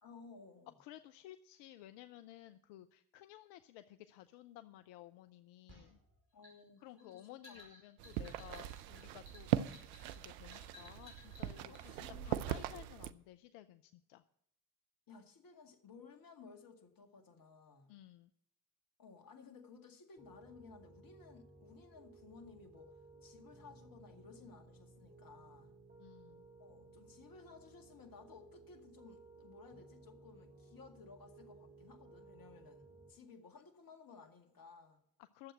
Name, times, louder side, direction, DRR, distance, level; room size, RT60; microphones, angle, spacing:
voice 1, 0.0-0.8 6.3-7.7 11.7-12.4 15.1-17.9 19.0-22.9 23.2-25.7 26.6-35.0, left 4 dB, 50° left, 6 dB, 2.1 m, -57 dB
voice 2, 0.8-6.0 6.8-9.6 10.1-14.2 17.9-18.3 26.0-26.5 35.2-35.5, left 14 dB, 70° left, 12 dB, 0.6 m, -55 dB
sound 1, 5.7-11.8, equal, 55° right, 4.9 m, -59 dB
sound 2, 8.0-13.1, right 12 dB, 80° right, 0.6 m, -40 dB
Piano, 20.2-33.1, right 3 dB, 20° right, 4.0 m, -59 dB
11.5 x 7.7 x 7.5 m, 0.73 s
hypercardioid pair, 45°, 44 cm